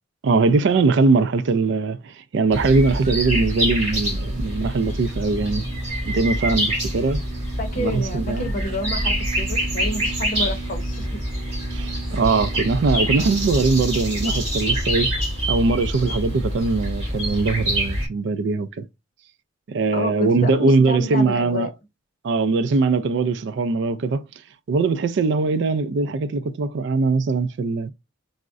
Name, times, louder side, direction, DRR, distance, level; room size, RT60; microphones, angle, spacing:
voice 1, 0.2-5.7 6.1-7.2 7.8-8.5 11.7-15.1 15.5-18.9 19.7-21.7 22.2-24.2 24.7-27.9, right 3 dB, 65° right, 0.3 m, -21 dB
sound 1, 2.5-18.1, right 1 dB, 30° right, 1.7 m, -25 dB
voice 2, 7.6-11.2 19.9-21.7, left 1 dB, 45° left, 0.7 m, -30 dB
3.5 x 2.1 x 2.4 m
head